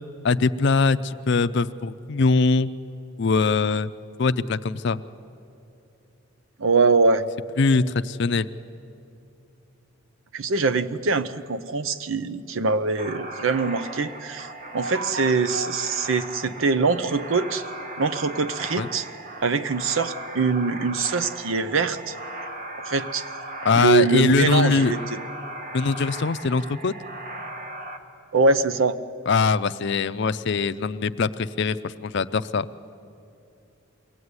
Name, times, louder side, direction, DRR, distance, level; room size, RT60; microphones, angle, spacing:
voice 1, 0.2-2.7 3.2-3.9 4.2-5.0 7.6-8.5 18.8-18.9 23.6-24.9 25.7-26.9 29.3-32.7, left 4 dB, 55° left, 12 dB, 0.5 m, -22 dB
voice 2, 6.6-7.2 10.3-17.7 18.0-19.1 19.4-22.1 22.8-23.2 23.7-25.0 28.3-29.0, right 4 dB, 70° right, 13 dB, 0.7 m, -23 dB
sound 1, 13.0-28.0, right 1 dB, 40° right, 1.4 m, -37 dB
23.0 x 16.5 x 9.6 m, 2.6 s
head